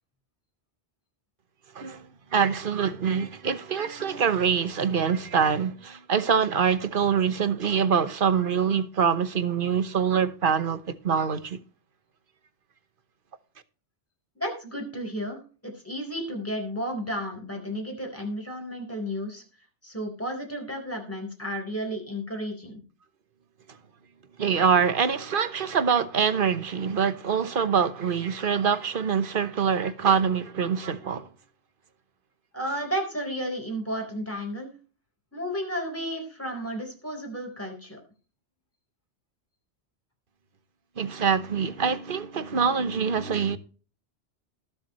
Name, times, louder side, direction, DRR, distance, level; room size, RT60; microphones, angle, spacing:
voice 1, 1.7-11.6 24.4-31.3 41.0-43.6, right 6 dB, 55° right, 1.1 m, -25 dB
voice 2, 14.4-15.4 15.6-19.4 19.8-22.8 32.5-34.7 35.3-38.0, equal, 10° left, 4.2 m, -32 dB
20.0 x 7.0 x 3.1 m
omnidirectional pair, 1.1 m